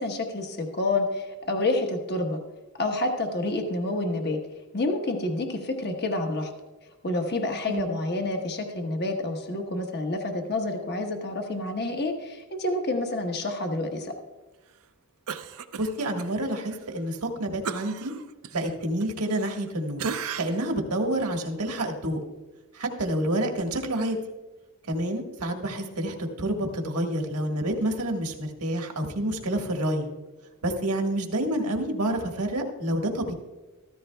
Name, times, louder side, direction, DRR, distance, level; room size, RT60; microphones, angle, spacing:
voice 1, 0.0-2.4 2.8-4.4 4.7-6.5 7.0-14.1, left 2 dB, 50° left, 4 dB, 1.1 m, -28 dB
Cough, 15.3-16.3 16.7-16.8 17.6-19.7 20.0-20.7 21.2-21.3, right 6 dB, 65° right, 0.5 m, -35 dB
voice 2, 15.8-18.1 18.5-20.1 20.4-22.2 22.7-24.2 24.9-30.1 30.6-33.3, right 1 dB, 85° right, 3 dB, 1.5 m, -28 dB
14.0 x 14.0 x 2.3 m, 1.2 s
head